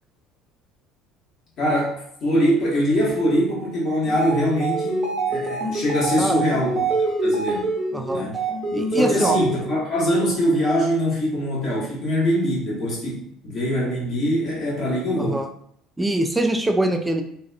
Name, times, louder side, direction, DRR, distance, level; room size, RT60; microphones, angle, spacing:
voice 1, 1.6-6.9 7.2-7.7 8.1-8.4 8.9-15.4, equal, 45° left, -6 dB, 1.1 m, -23 dB
sound 1, 4.0-9.8, right 3 dB, 45° right, 0.9 m, -25 dB
voice 2, 7.9-8.2 8.7-9.4 15.2-15.5 16.0-17.2, right 1 dB, 10° right, 4 dB, 0.3 m, -23 dB
2.7 x 2.3 x 2.2 m, 0.69 s
figure-of-eight pair, 60°, 0 cm